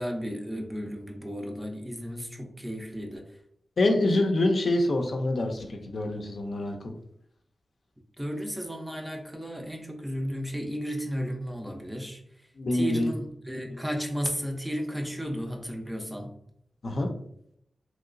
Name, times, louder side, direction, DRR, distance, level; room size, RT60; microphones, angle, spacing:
voice 1, 0.0-3.4 8.2-12.2 12.7-16.4, equal, 5° right, 1 dB, 0.5 m, -34 dB
voice 2, 3.8-6.9 12.6-13.1 16.8-17.1, left 2 dB, 55° left, 3 dB, 0.4 m, -26 dB
3.0 x 2.8 x 2.5 m, 0.70 s
wide cardioid pair, 115°, 0 cm